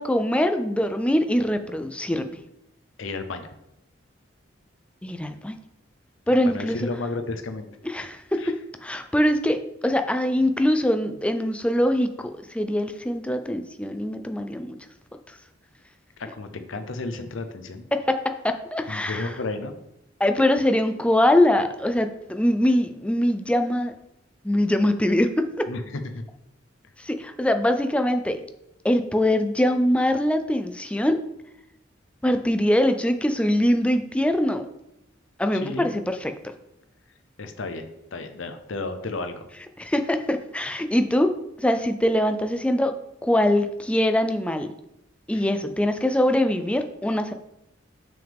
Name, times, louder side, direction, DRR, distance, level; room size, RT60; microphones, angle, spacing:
voice 1, 0.0-2.2 5.0-5.6 6.3-6.9 7.8-8.6 8.8-14.8 17.9-19.3 20.2-23.9 24.4-25.7 27.0-28.4 28.8-31.2 32.2-34.7 35.4-36.3 39.8-42.9 43.2-44.7 45.3-47.3, left 1 dB, 5° left, 7 dB, 0.4 m, -23 dB
voice 2, 3.0-3.5 6.3-7.7 8.4-8.5 16.3-17.9 18.9-19.7 25.7-26.2 35.6-35.9 37.4-39.4 45.3-45.4, left 3 dB, 85° left, 8 dB, 0.7 m, -33 dB
7.1 x 6.2 x 3.5 m, 0.83 s
head